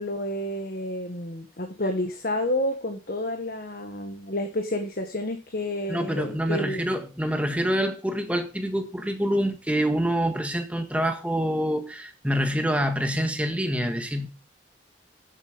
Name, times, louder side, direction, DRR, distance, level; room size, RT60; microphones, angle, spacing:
voice 1, 0.0-6.8, left 1 dB, 55° left, 1.5 m, -30 dB
voice 2, 5.9-14.3, equal, 10° right, 1.5 m, -26 dB
13.0 x 8.2 x 5.2 m
head